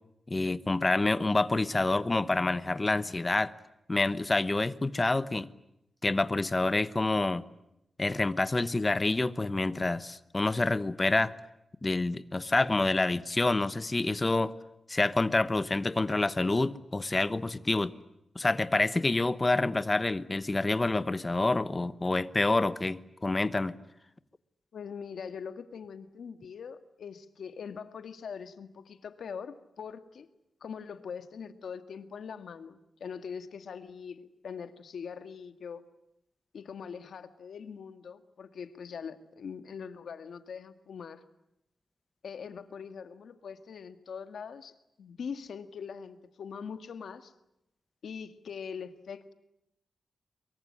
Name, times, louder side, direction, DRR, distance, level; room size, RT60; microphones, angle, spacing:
voice 1, 0.3-3.5 3.9-5.5 6.0-7.4 8.0-11.3 11.8-14.5 14.9-17.9 18.3-23.8, left 2 dB, 20° left, 1.0 m, -27 dB
voice 2, 24.7-30.3 30.6-35.8 36.5-41.2 42.2-47.3 48.0-49.3, left 6 dB, 75° left, 1.8 m, -42 dB
23.5 x 23.0 x 9.7 m
wide cardioid pair, 150°, 0 cm